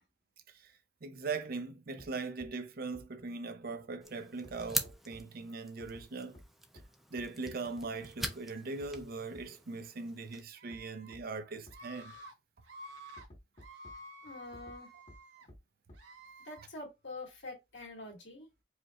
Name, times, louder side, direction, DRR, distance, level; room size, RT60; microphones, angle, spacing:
voice 1, 1.0-6.4 7.1-12.2, right 3 dB, 55° right, 0.6 m, -40 dB
sound 1, 2.0-2.1 2.4-2.5 2.9-3.0 4.4-5.2 5.8-6.0 6.3-6.4 6.8-6.9 7.2-7.3 8.8-9.0 9.3-9.4 10.7-10.8 11.1-11.2 11.7-11.8 13.2-13.9 14.5-14.8 15.1-15.2 15.5-15.6 15.9-16.0, equal, 35° left, 1.4 m, -53 dB
sound 2, 4.0-10.4, equal, ahead, 0.4 m, -43 dB
Screaming, 10.6-11.1 11.7-12.3 12.6-13.2 13.6-15.5 15.9-16.6, equal, 85° right, 1.5 m, -51 dB
voice 2, 14.2-14.9 16.4-18.5, left 2 dB, 75° left, 2.4 m, -46 dB
4.9 x 2.5 x 2.9 m
head